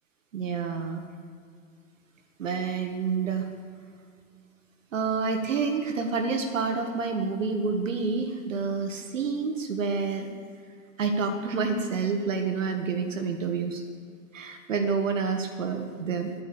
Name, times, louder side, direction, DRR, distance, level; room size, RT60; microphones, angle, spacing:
voice 1, 0.3-1.0 2.4-3.5 4.9-10.3 11.0-13.8 14.3-16.3, right 5 dB, 60° right, 6 dB, 1.6 m, -28 dB
11.0 x 9.8 x 8.9 m, 2.2 s
figure-of-eight pair, 105°, 43 cm